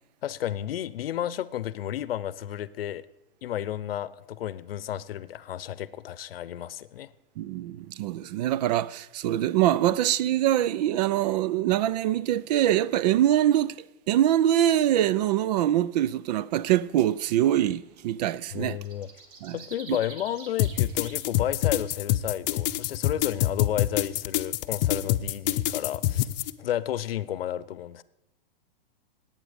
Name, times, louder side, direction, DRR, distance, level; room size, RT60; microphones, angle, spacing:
voice 1, 0.2-3.1 3.4-7.1 18.5-19.1 19.5-26.3 26.6-28.0, left 11 dB, 75° left, 0.8 m, -32 dB
voice 2, 7.4-13.8 14.1-18.8 19.4-19.6 19.9-20.0, right 12 dB, 45° right, 0.4 m, -24 dB
sound 1, 16.9-21.8, right 4 dB, 60° right, 2.3 m, -48 dB
sound 2, 20.6-26.5, left 15 dB, 45° left, 0.7 m, -25 dB
18.0 x 8.9 x 5.1 m
hypercardioid pair, 135°, 29 cm